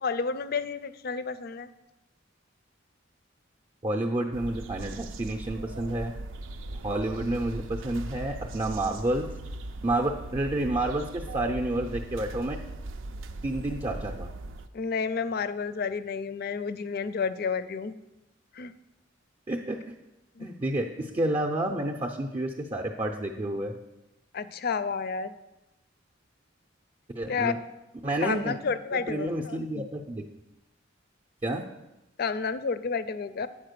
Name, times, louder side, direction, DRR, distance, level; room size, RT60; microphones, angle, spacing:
voice 1, 0.0-1.7 14.7-17.9 18.6-18.7 20.4-20.5 24.3-25.3 27.3-27.5 28.2-29.7 32.2-33.5, left 5 dB, 50° left, 14 dB, 0.4 m, -30 dB
voice 2, 3.8-6.1 6.8-9.3 9.8-12.6 13.4-14.3 19.5-19.9 20.4-23.7 27.1-27.6 28.0-28.6 28.9-30.2 31.4-31.7, right 1 dB, 25° right, 3 dB, 0.5 m, -29 dB
sound 1, 4.3-14.7, right 2 dB, 80° right, 0.5 m, -39 dB
8.6 x 4.4 x 6.7 m, 0.98 s
head